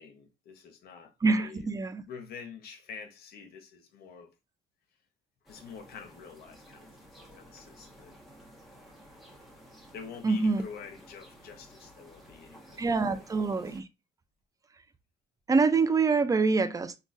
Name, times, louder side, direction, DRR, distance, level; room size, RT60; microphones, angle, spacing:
voice 1, 0.0-1.7 2.1-4.3 5.4-7.0 7.3-8.2 9.9-13.2, left 6 dB, 65° left, 0.9 m, -47 dB
voice 2, 1.2-2.0 10.2-10.6 12.8-13.9 15.5-17.0, right 4 dB, 20° right, 0.4 m, -25 dB
sound 1, 5.4-13.8, equal, ahead, 1.0 m, -54 dB
3.9 x 2.3 x 2.5 m
cardioid pair, 110°, 17 cm